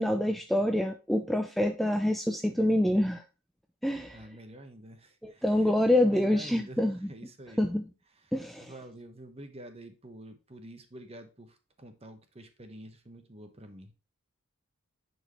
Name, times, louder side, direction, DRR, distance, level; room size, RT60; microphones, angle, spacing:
voice 1, 0.0-3.2 3.8-4.2 5.2-7.1 7.6-7.9 8.3-8.7, left 1 dB, ahead, 0.4 m, -26 dB
voice 2, 4.1-5.6 6.0-6.8 7.1-7.7 8.6-13.9, right 1 dB, 25° right, 1.0 m, -48 dB
10.0 x 4.5 x 3.1 m
head